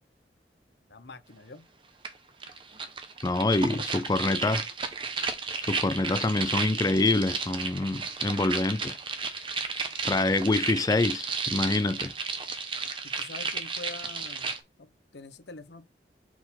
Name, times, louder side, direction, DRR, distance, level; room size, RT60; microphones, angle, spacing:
voice 1, 0.9-1.6 3.7-4.5 13.0-14.5 14.8-15.9, left 3 dB, 75° left, 0.9 m, -45 dB
sound 1, 2.0-2.1 2.4-14.6, right 4 dB, 30° right, 0.8 m, -33 dB
voice 2, 3.2-4.6 5.6-9.0 10.0-12.1, left 2 dB, 20° left, 0.3 m, -26 dB
4.6 x 4.3 x 5.6 m
head